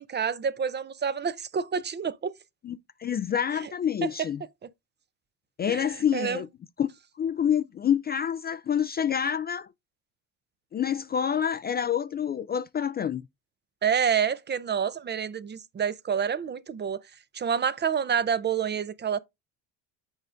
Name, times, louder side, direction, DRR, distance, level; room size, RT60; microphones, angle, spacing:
voice 1, 0.0-2.3 4.0-4.3 5.7-5.8 6.1-6.4 13.8-17.0 17.3-19.2, right 7 dB, 25° right, 0.6 m, -28 dB
voice 2, 2.6-4.4 5.6-6.5 6.8-6.9 7.2-9.7 10.7-13.2, left 8 dB, 25° left, 0.4 m, -27 dB
8.0 x 4.9 x 2.5 m
supercardioid pair, 80°, 39 cm